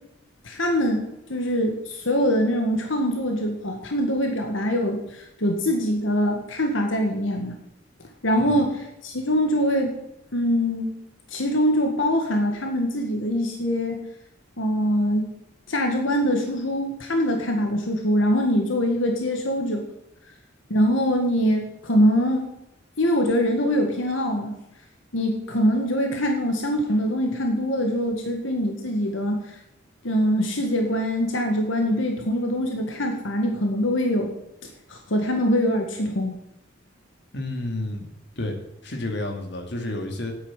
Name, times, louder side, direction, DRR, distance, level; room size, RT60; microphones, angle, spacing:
voice 1, 0.4-1.0 1.3-7.6 8.2-10.0 10.3-10.9 11.3-14.0 14.6-15.3 15.7-19.8 20.7-22.5 23.0-24.6 25.1-29.4 30.0-34.3 34.9-36.3, equal, 85° left, 3 dB, 1.8 m, -23 dB
voice 2, 37.3-38.0 38.4-38.6 38.8-40.3, left 2 dB, 60° left, 3 dB, 2.3 m, -30 dB
10.0 x 8.6 x 7.2 m, 0.85 s
head